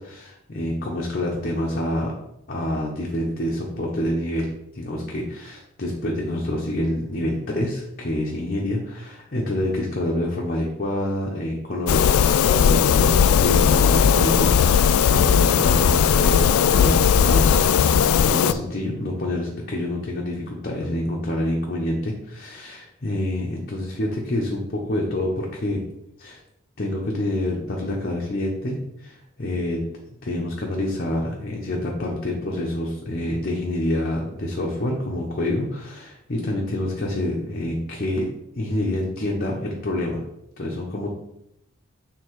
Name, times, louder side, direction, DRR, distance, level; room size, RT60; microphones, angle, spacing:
voice 1, 0.0-2.1 2.5-12.1 12.4-17.7 18.2-25.8 26.2-26.4 26.8-29.8 30.2-38.3 38.5-40.2 40.6-41.1, left 1 dB, 45° left, -2 dB, 0.9 m, -27 dB
sound 1, 11.9-18.5, left 7 dB, 85° left, 0.3 m, -17 dB
6.8 x 3.5 x 4.7 m, 0.83 s
head